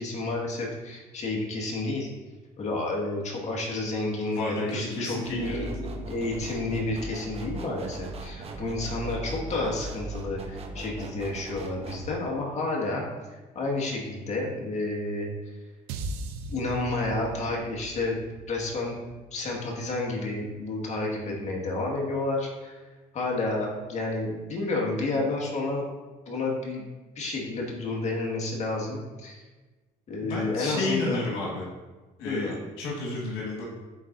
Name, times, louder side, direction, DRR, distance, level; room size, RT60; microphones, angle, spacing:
voice 1, 0.0-2.1 2.6-13.0 13.3-15.3 16.5-18.2 18.5-19.0 19.3-22.8 23.1-25.8 26.3-26.9 27.2-29.4 30.1-31.2 32.2-32.6, left 2 dB, 45° left, -1 dB, 1.8 m, -30 dB
voice 2, 4.3-5.7 30.2-31.6 32.2-33.6, left 2 dB, 90° left, -3 dB, 1.7 m, -32 dB
sound 1, 5.2-12.1, right 1 dB, 40° right, 0.9 m, -38 dB
sound 2, 15.9-20.2, right 2 dB, 90° right, 0.6 m, -39 dB
10.5 x 4.2 x 2.6 m, 1.2 s
cardioid pair, 95°, 16 cm